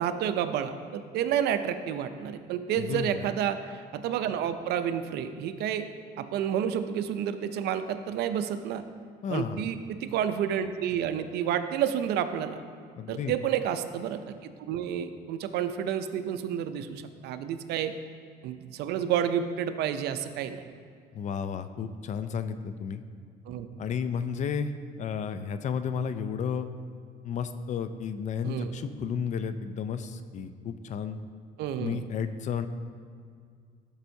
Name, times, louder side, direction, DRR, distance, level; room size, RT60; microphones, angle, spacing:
voice 1, 0.0-5.8 6.2-8.8 9.3-12.6 13.1-17.9 18.4-20.6 23.5-23.7 28.4-28.7 31.6-32.0, right 9 dB, 75° right, 10 dB, 0.5 m, -30 dB
voice 2, 2.8-3.2 9.2-9.6 13.0-13.3 21.1-23.0 23.8-26.7 27.2-31.2 31.8-32.7, left 7 dB, 45° left, 11 dB, 0.4 m, -32 dB
11.5 x 5.4 x 2.7 m, 2.1 s
cardioid pair, 110°, 17 cm